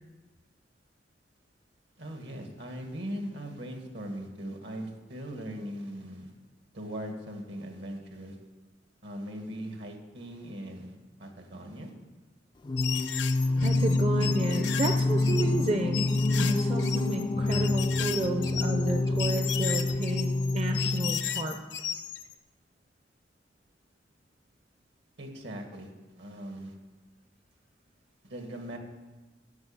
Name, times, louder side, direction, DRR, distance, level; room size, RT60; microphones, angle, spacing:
voice 1, 2.0-6.3 6.7-8.4 9.0-10.9 11.2-11.9 25.2-25.9 26.2-26.7 28.2-28.8, equal, 70° right, 3 dB, 1.9 m, -39 dB
Singing, 12.6-21.6, left 2 dB, 25° left, 0.3 m, -27 dB
sound 1, 12.8-22.3, left 10 dB, 70° left, 0.6 m, -35 dB
voice 2, 13.6-16.1 16.4-21.6, right 2 dB, 35° right, 4 dB, 0.7 m, -32 dB
9.5 x 7.1 x 8.8 m, 1.2 s
head